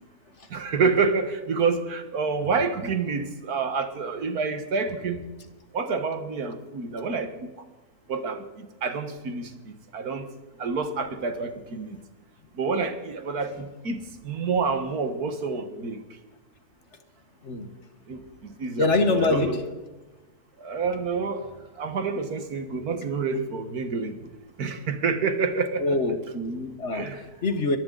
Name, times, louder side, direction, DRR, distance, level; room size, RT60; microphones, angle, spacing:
voice 1, 0.5-5.3 5.7-7.6 8.1-10.3 10.6-12.0 12.5-16.0 18.1-19.6 20.6-21.5 21.8-24.3 24.6-26.0 26.9-27.2, right 4 dB, 80° right, 8 dB, 1.9 m, -28 dB
voice 2, 18.8-19.6 25.8-27.1 27.4-27.8, left 3 dB, 50° left, 8 dB, 1.6 m, -24 dB
22.0 x 15.5 x 3.9 m, 1.2 s
omnidirectional pair, 1.6 m